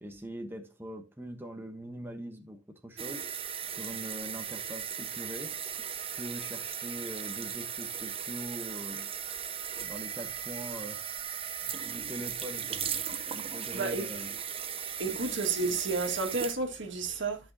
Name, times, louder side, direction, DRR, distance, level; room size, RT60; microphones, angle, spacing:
voice 1, 0.0-3.3 3.7-5.6 6.1-9.1 9.8-11.1 11.8-12.8 13.3-14.4 15.0-15.4 15.6-15.8, equal, 10° right, 1.1 m, -42 dB
sound 1, 3.0-16.5, right 8 dB, 30° right, 0.8 m, -37 dB
voice 2, 13.7-14.1 15.0-17.4, right 3 dB, 70° right, 2.0 m, -31 dB
13.5 x 6.0 x 2.8 m
head